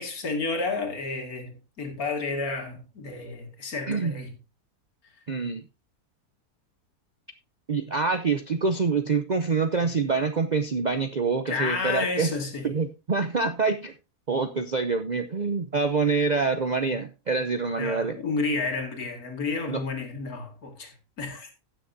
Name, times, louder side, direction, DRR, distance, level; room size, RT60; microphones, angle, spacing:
voice 1, 0.0-4.3 11.5-12.7 17.8-21.5, left 3 dB, 70° left, 2.5 m, -31 dB
voice 2, 5.3-5.6 7.7-12.3 12.6-13.9 14.3-18.2 19.7-19.8, right 4 dB, 50° right, 0.5 m, -26 dB
16.5 x 7.0 x 2.7 m
omnidirectional pair, 1.7 m